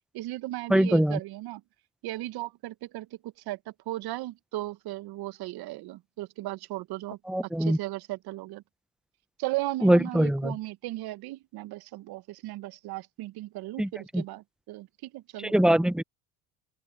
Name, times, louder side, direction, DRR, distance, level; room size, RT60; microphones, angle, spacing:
voice 1, 0.1-1.6 2.0-3.6 3.8-8.6 9.4-15.5, right 17 dB, 60° right, 1.4 m, -36 dB
voice 2, 0.7-1.2 7.3-7.8 9.8-10.6 13.8-14.2 15.5-16.0, right 1 dB, ahead, 0.9 m, -23 dB
open air
hypercardioid pair, 65°, 41 cm